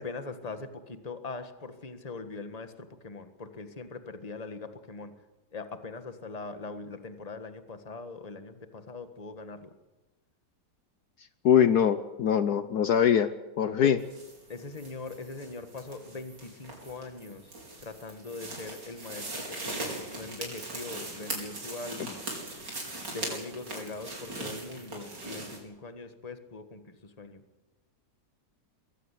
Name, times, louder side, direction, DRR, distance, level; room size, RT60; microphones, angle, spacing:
voice 1, 0.0-5.1 5.5-9.7 13.8-14.0 14.5-17.5 17.8-22.3 22.8-27.4, left 3 dB, 25° left, 9 dB, 1.6 m, -41 dB
voice 2, 11.4-13.3 13.6-14.0, left 8 dB, 65° left, 11 dB, 1.3 m, -22 dB
sound 1, 14.0-25.6, right 2 dB, 85° right, 5.5 m, -40 dB
22.5 x 15.5 x 8.4 m, 1.1 s
omnidirectional pair, 1.9 m